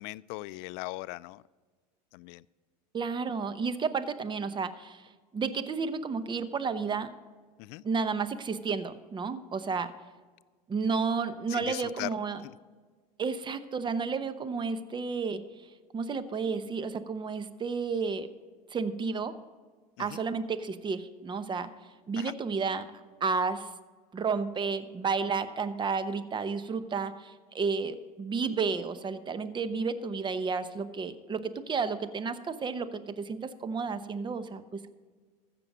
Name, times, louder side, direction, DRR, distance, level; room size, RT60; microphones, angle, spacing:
voice 1, 0.0-1.4 2.1-2.5 7.6-7.8 11.5-12.1 12.4-12.5 20.0-20.2 22.2-22.3, left 21 dB, 60° left, 20 dB, 0.4 m, -39 dB
voice 2, 2.9-7.1 7.8-9.9 10.7-12.4 13.2-15.4 15.9-18.3 18.7-19.3 20.0-21.7 22.1-22.9 23.2-23.7 24.1-34.9, right 5 dB, 25° right, 12 dB, 0.8 m, -32 dB
14.5 x 6.9 x 6.1 m, 1.4 s
supercardioid pair, 100°, 20 cm